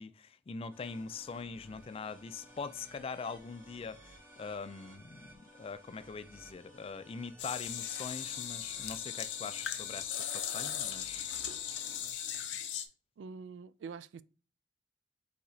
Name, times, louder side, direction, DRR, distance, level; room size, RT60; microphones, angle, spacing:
voice 1, 0.0-11.3, left 5 dB, 30° left, 0.3 m, -43 dB
sound 1, 0.7-12.1, equal, 10° right, 1.5 m, -57 dB
sound 2, 7.4-12.9, left 9 dB, 85° left, 0.6 m, -38 dB
voice 2, 13.2-14.2, right 5 dB, 80° right, 0.3 m, -45 dB
4.7 x 4.1 x 2.7 m
head